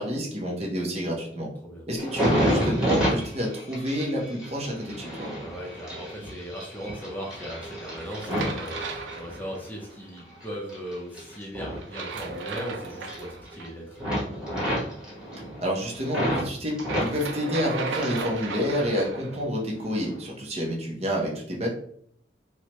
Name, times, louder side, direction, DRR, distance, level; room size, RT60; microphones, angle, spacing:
voice 1, 0.0-1.5 1.9-5.3 15.6-21.7, equal, 35° right, -1 dB, 0.8 m, -29 dB
sound 1, 2.0-9.6 10.1-12.7 12.9-13.7 14.0-16.5 16.8-18.3 18.6-19.4 19.9-20.1, equal, 5° right, 1.3 m, -30 dB
voice 2, 5.4-14.0, equal, 10° left, -2 dB, 0.6 m, -38 dB
sound 2, 7.9-9.9 11.8-13.7 16.7-19.4, right 4 dB, 90° right, 0.5 m, -36 dB
4.4 x 2.2 x 3.0 m, 0.63 s
head